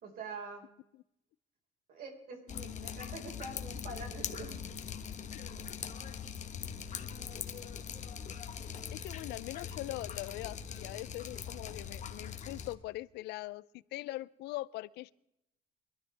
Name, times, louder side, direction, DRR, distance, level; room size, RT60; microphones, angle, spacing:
voice 1, 0.0-0.6 1.9-4.6, right 3 dB, 60° right, 2 dB, 4.9 m, -45 dB
Drip, 2.5-12.7, left 7 dB, 45° left, 1.4 m, -42 dB
voice 2, 8.6-15.1, left 18 dB, 80° left, 20 dB, 0.5 m, -42 dB
24.5 x 12.5 x 3.4 m, 0.83 s
cardioid pair, 110°, 17 cm